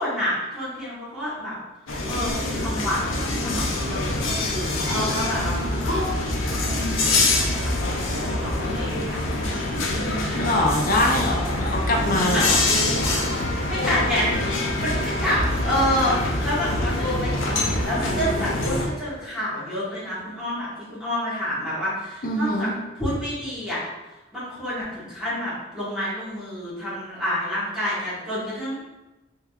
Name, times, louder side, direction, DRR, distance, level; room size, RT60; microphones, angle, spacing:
voice 1, 0.0-1.5 2.1-5.8 6.1-10.6 12.3-12.5 13.7-14.3 14.8-22.7 22.9-23.9 24.3-28.8, equal, 5° right, -10 dB, 1.3 m, -29 dB
sound 1, 1.9-18.9, left 2 dB, 90° left, 0.6 m, -25 dB
voice 2, 10.3-12.6 22.2-22.7, left 1 dB, 45° left, 1 dB, 0.5 m, -23 dB
3.4 x 3.0 x 2.3 m, 1.0 s
head